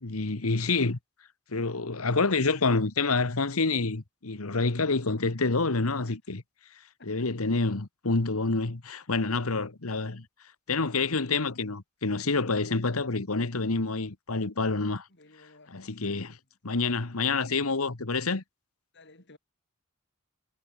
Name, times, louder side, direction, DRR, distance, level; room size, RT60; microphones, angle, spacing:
voice 1, 0.0-1.0 1.5-6.4 7.1-10.2 10.7-15.1 15.7-16.3 16.6-18.4, left 3 dB, 90° left, 1.5 m, -27 dB
voice 2, 7.0-7.3 15.1-16.4 18.9-19.4, left 2 dB, 55° left, 5.7 m, -56 dB
head